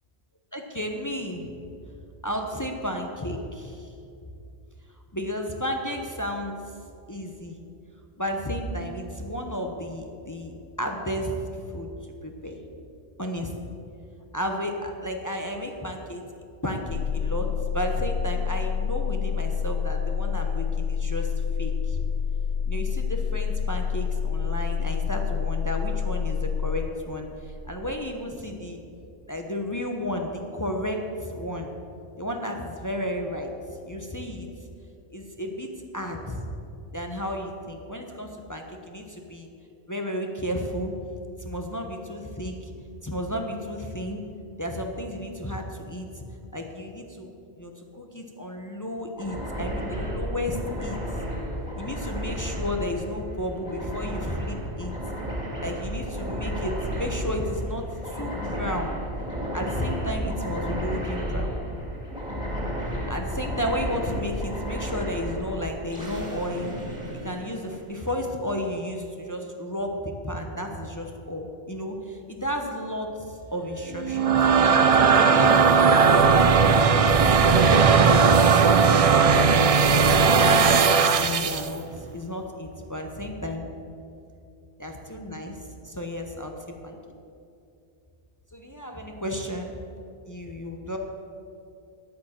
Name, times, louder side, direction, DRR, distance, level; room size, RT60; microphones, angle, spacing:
voice 1, 0.5-1.4 2.2-3.9 5.1-6.6 7.1-7.6 8.2-10.5 10.8-11.9 12.2-12.6 13.2-13.5 14.3-16.2 16.6-17.5 17.7-21.3 21.6-22.0 22.7-27.3 27.7-28.8 29.3-31.7 32.2-33.5 33.9-34.5 35.1-36.5 36.9-39.5 39.9-40.9 41.4-42.7 43.0-44.2 44.6-46.2 46.5-47.3 47.6-51.0 51.8-54.9 55.6-58.9 59.5-61.6 63.1-66.7 67.2-74.5 74.9-79.5 80.0-83.7 84.8-85.6 85.8-86.5 86.8-87.0 88.5-89.7 90.3-91.0, equal, 20° left, 3 dB, 0.9 m, -32 dB
sound 1, 16.9-26.9, left 7 dB, 55° left, 0.4 m, -27 dB
sound 2, 49.2-68.0, equal, 5° right, 2.6 m, -32 dB
sound 3, 74.0-81.7, right 5 dB, 45° right, 0.5 m, -18 dB
10.5 x 8.8 x 7.5 m, 2.6 s
omnidirectional pair, 1.1 m